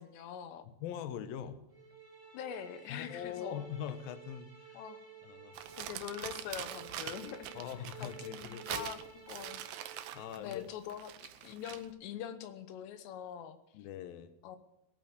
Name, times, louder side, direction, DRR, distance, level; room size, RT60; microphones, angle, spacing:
voice 1, 0.0-0.7 2.3-3.6 4.7-5.0 5.8-7.5 8.0-9.0 9.3-9.6 10.4-13.6 14.4-14.6, left 9 dB, 75° left, 11 dB, 2.9 m, -43 dB
voice 2, 0.7-1.6 2.9-4.8 5.2-5.6 7.6-8.9 10.1-10.7 13.7-14.3, left 9 dB, 90° left, 11 dB, 2.0 m, -42 dB
sound 1, 1.7-10.6, right 5 dB, 15° right, 0.8 m, -53 dB
Crumpling crinkling, 5.5-11.9, right 12 dB, 90° right, 2.2 m, -44 dB
18.0 x 8.9 x 8.0 m, 0.85 s
omnidirectional pair, 5.7 m